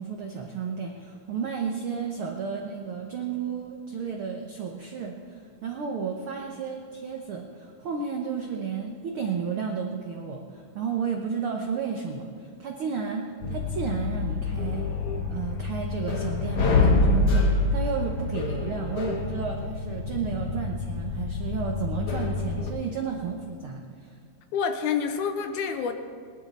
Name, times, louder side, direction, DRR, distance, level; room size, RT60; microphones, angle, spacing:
voice 1, 0.0-14.9 15.3-24.2, right 6 dB, 75° right, 1 dB, 1.2 m, -32 dB
sound 1, 13.4-22.7, left 3 dB, 60° left, 1.8 m, -26 dB
voice 2, 24.5-25.9, left 6 dB, 75° left, 7 dB, 2.0 m, -27 dB
20.0 x 11.5 x 4.2 m, 2.1 s
omnidirectional pair, 3.9 m